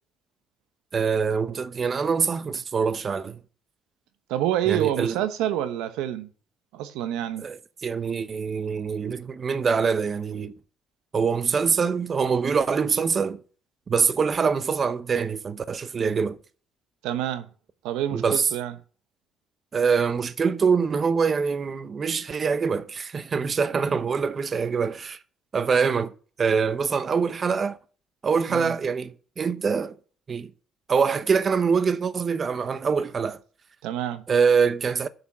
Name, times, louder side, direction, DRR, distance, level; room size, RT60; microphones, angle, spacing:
voice 1, 0.9-3.4 4.7-5.2 7.4-10.5 11.1-13.4 13.9-16.4 18.1-18.5 19.7-25.2 25.5-26.1 26.4-27.8 28.2-30.0 30.3-30.5 30.9-33.4 34.3-35.1, right 5 dB, 40° right, 0.7 m, -24 dB
voice 2, 4.3-6.3 6.7-7.4 17.0-17.5 17.8-18.7 28.5-28.7 33.8-34.2, right 12 dB, 90° right, 0.9 m, -27 dB
7.0 x 6.9 x 7.5 m
cardioid pair, 90°, 0 cm